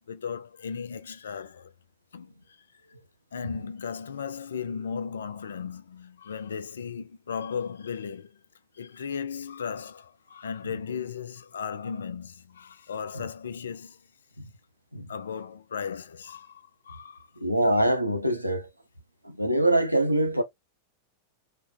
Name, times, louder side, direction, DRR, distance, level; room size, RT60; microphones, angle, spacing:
voice 1, 0.1-1.7 2.1-2.6 3.3-8.4 8.7-14.0 15.1-17.3, left 6 dB, 65° left, 0.3 m, -36 dB
voice 2, 17.4-18.7 19.2-20.4, right 1 dB, 90° right, 0.6 m, -24 dB
3.2 x 2.1 x 2.4 m
figure-of-eight pair, 90°, 0 cm